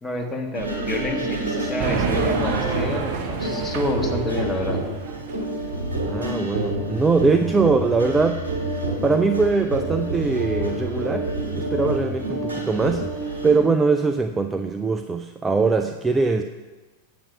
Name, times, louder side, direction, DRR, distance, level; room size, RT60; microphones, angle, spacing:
voice 1, 0.0-4.8, left 1 dB, 10° left, 1 dB, 1.5 m, -29 dB
sound 1, 0.5-13.5, right 1 dB, 75° right, 2.5 m, -28 dB
sound 2, 1.8-5.6, right 5 dB, 50° right, 1.1 m, -28 dB
voice 2, 6.1-8.7 9.0-16.4, right 4 dB, 15° right, 6 dB, 0.4 m, -22 dB
8.6 x 6.8 x 6.7 m, 1.2 s
figure-of-eight pair, 90°, 0 cm